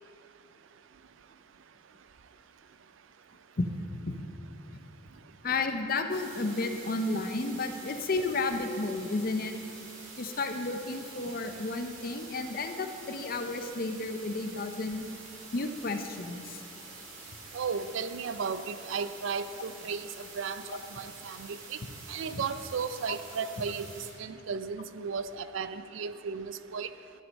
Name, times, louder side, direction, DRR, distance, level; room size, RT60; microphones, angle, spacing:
voice 1, 5.4-9.5 10.2-15.1 15.5-16.6 20.7-20.8 22.3-22.4 23.1-23.2, left 3 dB, 45° left, 7 dB, 0.6 m, -32 dB
sound 1, 6.1-24.1, right 3 dB, 90° right, 2.2 m, -47 dB
voice 2, 17.5-20.1 20.3-21.8 22.1-26.9, right 5 dB, 75° right, 12 dB, 0.4 m, -35 dB
12.0 x 6.3 x 5.2 m, 2.6 s
head